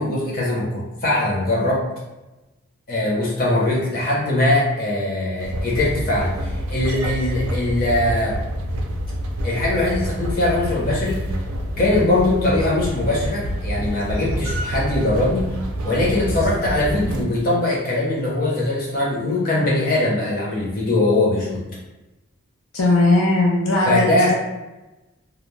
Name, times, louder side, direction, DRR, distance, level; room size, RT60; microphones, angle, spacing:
voice 1, 0.0-1.9 2.9-8.4 9.4-11.2 11.8-15.5 15.8-21.6 23.9-24.3, left 2 dB, 45° left, -5 dB, 0.8 m, -21 dB
sound 1, 5.4-17.3, equal, 85° right, 0.4 m, -27 dB
voice 2, 22.7-24.3, left 2 dB, 75° left, -3 dB, 0.4 m, -18 dB
2.4 x 2.0 x 3.0 m, 1.0 s
head